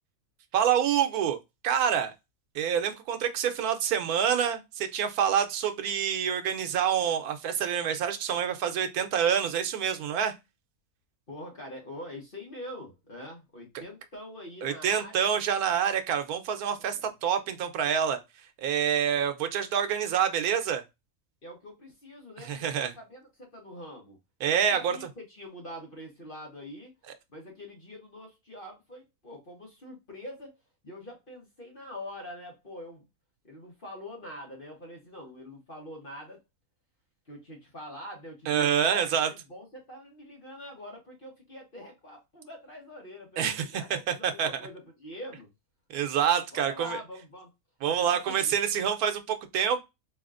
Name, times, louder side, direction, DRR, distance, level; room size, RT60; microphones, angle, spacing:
voice 1, 0.5-1.4 1.6-2.1 2.5-10.3 13.7-13.8 14.6-18.2 18.6-20.8 22.4-22.9 24.4-25.0 38.5-39.3 43.4-44.5 45.9-47.0 47.8-49.8, right 8 dB, 90° right, 1.2 m, -27 dB
voice 2, 11.3-15.3 17.0-17.1 21.4-24.2 24.4-26.9 27.3-30.5 30.8-33.0 33.4-36.4 37.3-45.5 46.5-47.5 47.8-48.5, left 1 dB, 40° left, 1.4 m, -44 dB
4.0 x 3.2 x 2.4 m
omnidirectional pair, 1.5 m